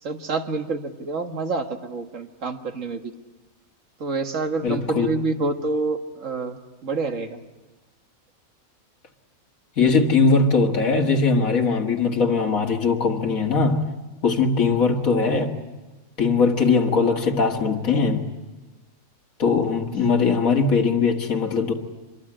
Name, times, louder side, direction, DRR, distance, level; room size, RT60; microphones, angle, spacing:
voice 1, 0.0-3.1 4.0-7.4, right 3 dB, 60° right, 1.9 m, -27 dB
voice 2, 4.6-5.1 9.8-13.9 14.2-15.6 16.2-18.3 19.4-21.7, left 4 dB, 70° left, 2.3 m, -20 dB
25.0 x 23.0 x 8.8 m
omnidirectional pair, 1.5 m